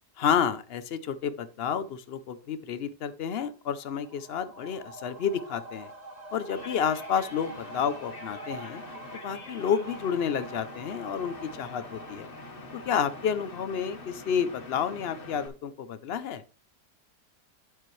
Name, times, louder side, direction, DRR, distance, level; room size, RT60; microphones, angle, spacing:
voice 1, 0.2-5.9 6.3-8.8 9.2-12.3 12.7-16.4, left 7 dB, 70° left, 13 dB, 0.5 m, -30 dB
sound 1, 3.7-15.1 15.5-15.6, right 2 dB, 25° right, 1.3 m, -46 dB
sound 2, 6.5-15.5, left 3 dB, 35° left, 1.2 m, -45 dB
9.7 x 7.4 x 3.1 m, 0.33 s
omnidirectional pair, 1.8 m